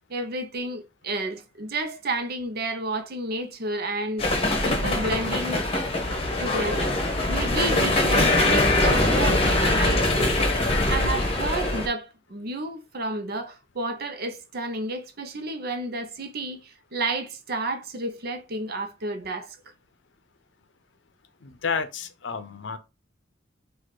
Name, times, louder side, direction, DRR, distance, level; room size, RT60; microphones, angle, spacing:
voice 1, 0.1-5.7 6.4-6.9 7.3-10.4 10.9-19.6, right 2 dB, 55° right, 0.8 m, -31 dB
sound 1, 4.2-11.9, left 2 dB, 30° left, 1.0 m, -22 dB
voice 2, 21.4-22.8, left 5 dB, 70° left, 0.6 m, -30 dB
4.2 x 2.5 x 4.7 m
head